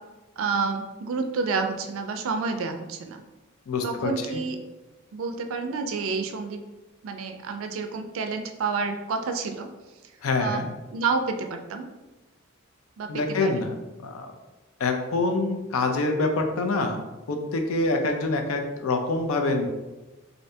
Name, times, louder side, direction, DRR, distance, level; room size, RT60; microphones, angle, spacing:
voice 1, 0.4-3.2 3.8-4.6 5.1-6.6 7.0-9.7 10.4-10.6 10.9-11.9 13.0-13.6, right 4 dB, 70° right, 5 dB, 0.3 m, -29 dB
voice 2, 3.7-4.4 10.2-10.7 13.1-13.8 14.0-14.3 14.8-17.0 17.3-19.7, left 3 dB, 90° left, 5 dB, 0.5 m, -26 dB
2.6 x 2.6 x 3.2 m, 1.1 s
head